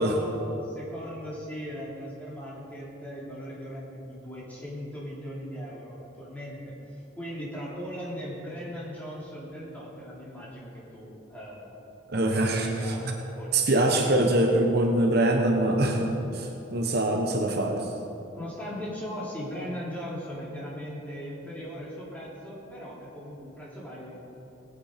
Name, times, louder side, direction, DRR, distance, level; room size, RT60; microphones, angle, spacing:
voice 1, 0.0-6.7 7.1-11.7 12.3-13.7 18.3-24.2, equal, 10° left, -6 dB, 3.2 m, -38 dB
voice 2, 12.1-13.1 13.5-17.8, right 1 dB, 55° right, 2 dB, 1.1 m, -24 dB
19.0 x 8.5 x 5.1 m, 2.9 s
head